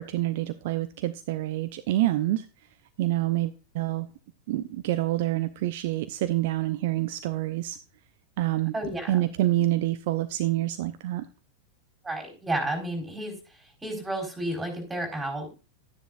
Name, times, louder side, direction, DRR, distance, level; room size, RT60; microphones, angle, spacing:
voice 1, 0.0-2.5 3.0-4.1 4.5-7.8 8.4-8.7 9.1-11.2, right 15 dB, 50° right, 10 dB, 0.7 m, -27 dB
voice 2, 8.7-9.3 12.0-13.4 13.8-15.5, right 1 dB, 10° right, 3 dB, 4.3 m, -31 dB
12.0 x 10.0 x 2.5 m, 0.33 s
figure-of-eight pair, 90°, 0 cm